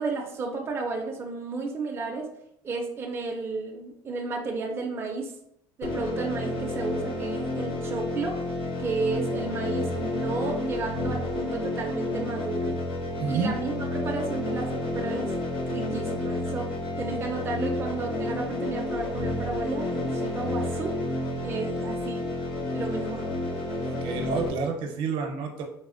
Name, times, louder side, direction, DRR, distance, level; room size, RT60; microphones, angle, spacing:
voice 1, 0.0-2.3 2.6-5.3 5.8-8.5 8.8-12.7 13.3-15.3 15.7-16.7 17.0-21.0 21.4-22.3 22.7-23.3, right 3 dB, 25° right, 1 dB, 0.4 m, -32 dB
sound 1, 5.8-24.5, left 1 dB, 65° left, 0.9 m, -30 dB
voice 2, 13.2-13.5 23.8-25.6, right 5 dB, 65° right, 2 dB, 0.7 m, -29 dB
4.0 x 2.1 x 2.5 m, 0.73 s
cardioid pair, 125°, 10 cm